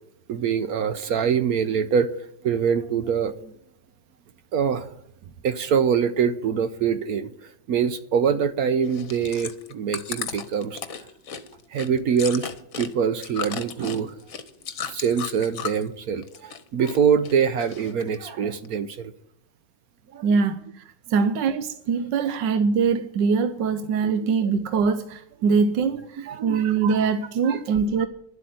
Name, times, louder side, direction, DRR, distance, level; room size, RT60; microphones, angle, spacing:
voice 1, 0.3-2.1 2.4-3.5 4.5-5.0 5.4-10.8 11.7-12.5 12.8-14.2 14.9-19.1 20.1-20.3 24.0-24.3 26.2-26.6 27.4-27.6 28.0-28.1, right 7 dB, 65° right, 1.0 m, -24 dB
Chewing mastication, 8.9-15.9 16.2-17.0 17.2-18.2 18.6-18.7, left 7 dB, 55° left, 1.4 m, -35 dB
voice 2, 20.2-20.8 21.1-28.1, right 5 dB, 85° right, 1.4 m, -23 dB
11.5 x 8.0 x 9.2 m
omnidirectional pair, 1.9 m